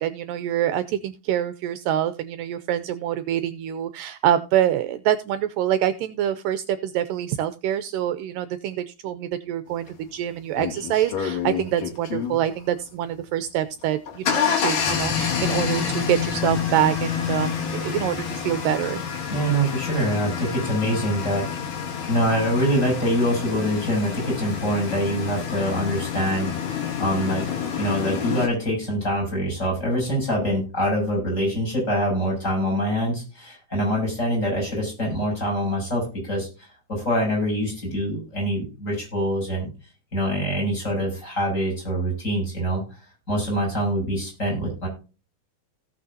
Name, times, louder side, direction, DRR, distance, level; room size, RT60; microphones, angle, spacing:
voice 1, 0.0-19.0, right 11 dB, 80° right, 11 dB, 2.1 m, -25 dB
sound 1, 9.9-10.0 10.6-12.4 13.8-28.5, left 7 dB, 65° left, 3.7 m, -28 dB
voice 2, 19.3-21.5 21.8-27.4 27.8-39.7 40.1-42.8 43.3-44.9, equal, 20° left, 0 dB, 6.7 m, -25 dB
17.5 x 6.3 x 2.7 m, 0.32 s
omnidirectional pair, 4.1 m